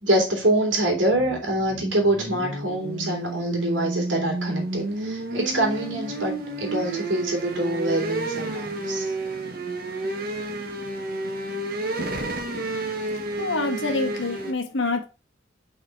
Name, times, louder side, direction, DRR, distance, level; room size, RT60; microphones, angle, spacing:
voice 1, 0.0-9.1, right 1 dB, 85° right, 3.2 m, -25 dB
sound 1, 0.8-14.5, right 2 dB, 50° right, 1.3 m, -31 dB
voice 2, 13.4-15.0, left 3 dB, 85° left, 1.4 m, -26 dB
5.7 x 4.5 x 4.6 m
head